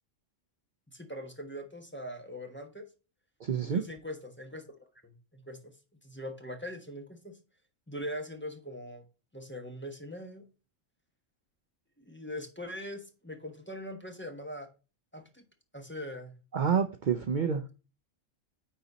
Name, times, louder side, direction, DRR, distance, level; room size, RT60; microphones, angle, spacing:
voice 1, 0.9-2.9 3.6-5.7 6.0-7.4 7.9-9.0 9.3-10.4 12.0-14.7 15.1-15.4 15.7-16.3 17.4-17.5, equal, 10° left, 4 dB, 1.1 m, -42 dB
voice 2, 3.4-3.8 16.5-17.6, right 7 dB, 50° right, 8 dB, 0.6 m, -28 dB
9.6 x 4.2 x 3.9 m, 0.31 s
omnidirectional pair, 1.3 m